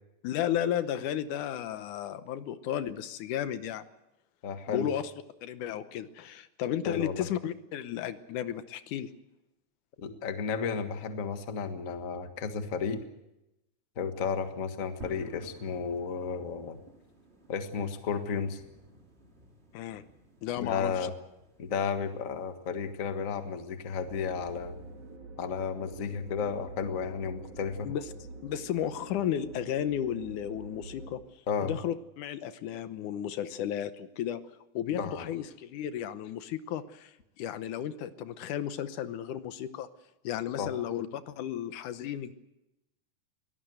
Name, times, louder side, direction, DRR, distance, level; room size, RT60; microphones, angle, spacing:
voice 1, 0.2-3.8 4.7-5.0 5.4-9.1 19.7-20.0 20.4-21.1 27.8-28.1 28.4-34.4 34.7-39.9 40.2-42.3, left 10 dB, 80° left, 12 dB, 2.4 m, -33 dB
voice 2, 4.4-4.9 6.8-7.3 10.0-13.1 13.9-16.8 17.5-18.6 20.6-21.1 21.6-24.8 25.4-27.9 31.5-31.7 34.9-35.3 40.6-40.7, left 6 dB, 35° left, 8 dB, 1.3 m, -33 dB
sound 1, 15.0-25.2, right 1 dB, 20° right, 2.8 m, -55 dB
sound 2, 24.0-31.2, right 3 dB, 65° right, 3.9 m, -46 dB
23.0 x 17.5 x 8.0 m, 0.91 s
omnidirectional pair, 3.6 m